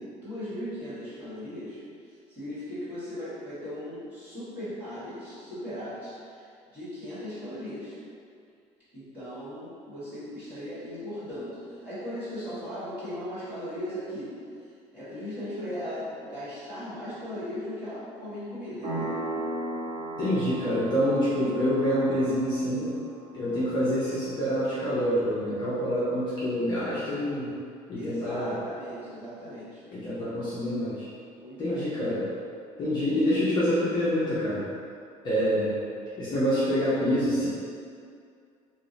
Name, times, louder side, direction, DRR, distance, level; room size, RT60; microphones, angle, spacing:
voice 1, 0.0-6.5 6.7-7.9 8.9-14.3 14.9-19.2 27.9-29.8 31.4-31.8, equal, 10° right, -14 dB, 1.5 m, -38 dB
sound 1, 18.8-27.2, right 1 dB, 45° right, 0.9 m, -38 dB
voice 2, 20.2-22.9 23.3-27.5 27.9-28.5 29.9-31.0 31.6-32.3 32.8-34.7 35.2-35.8 36.2-37.5, equal, 35° left, -10 dB, 0.6 m, -26 dB
2.8 x 2.0 x 3.9 m, 2.3 s
cardioid pair, 170°, 14 cm